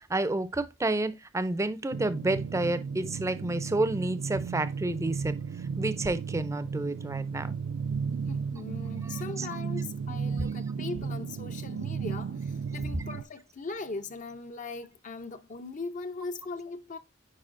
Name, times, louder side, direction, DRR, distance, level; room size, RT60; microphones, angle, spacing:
voice 1, 0.0-5.4 5.8-7.5 9.0-9.5, right 2 dB, 15° right, 0.5 m, -30 dB
sound 1, 1.9-13.2, right 6 dB, 70° right, 0.3 m, -34 dB
voice 2, 8.3-17.0, left 3 dB, 40° left, 0.6 m, -39 dB
9.6 x 4.7 x 2.5 m
head